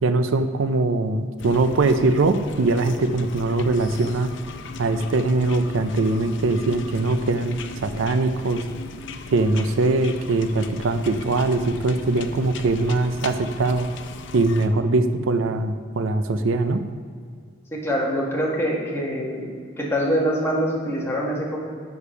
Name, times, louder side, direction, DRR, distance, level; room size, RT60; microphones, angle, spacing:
voice 1, 0.0-4.3 4.8-8.6 9.3-13.9 14.3-16.8, right 2 dB, 80° right, 10 dB, 0.5 m, -22 dB
sound 1, 1.4-14.7, left 3 dB, 65° left, 0.5 m, -38 dB
voice 2, 17.7-19.5 19.8-21.6, equal, 15° left, -5 dB, 1.6 m, -24 dB
6.8 x 6.5 x 5.6 m, 2.1 s
head